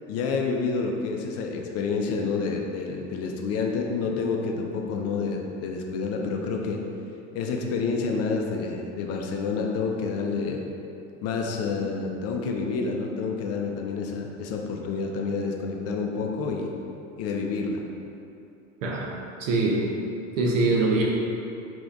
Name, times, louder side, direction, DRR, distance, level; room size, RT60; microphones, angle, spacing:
voice 1, 0.1-6.8 7.3-10.6 11.2-16.7 17.2-17.8, left 4 dB, 40° left, 1 dB, 0.5 m, -28 dB
voice 2, 19.4-19.8 20.4-21.0, right 3 dB, 75° right, -2 dB, 0.8 m, -23 dB
4.9 x 3.0 x 2.5 m, 2.7 s
hypercardioid pair, 80°, 38 cm